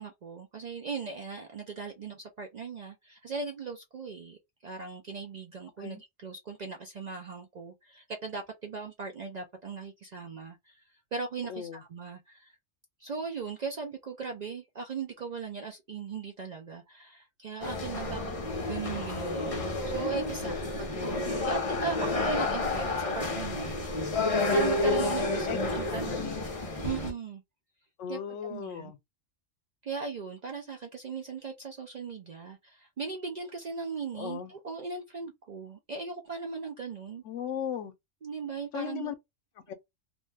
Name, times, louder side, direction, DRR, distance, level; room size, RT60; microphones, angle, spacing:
voice 1, 0.0-10.8 11.1-12.6 13.0-18.2 18.7-19.6 19.8-23.7 24.5-26.3 26.8-27.4 28.1-28.9 29.8-37.2 38.2-39.1, right 5 dB, 60° right, 0.4 m, -38 dB
voice 2, 11.5-11.8 20.4-20.6 23.0-23.5 25.5-25.6 25.9-26.4 28.0-29.0 34.1-34.5 37.2-37.9 38.7-39.1 39.7-39.8, left 8 dB, 90° left, 0.9 m, -37 dB
sound 1, 17.6-27.1, left 2 dB, 35° left, 0.7 m, -30 dB
2.5 x 2.2 x 3.2 m
omnidirectional pair, 1.2 m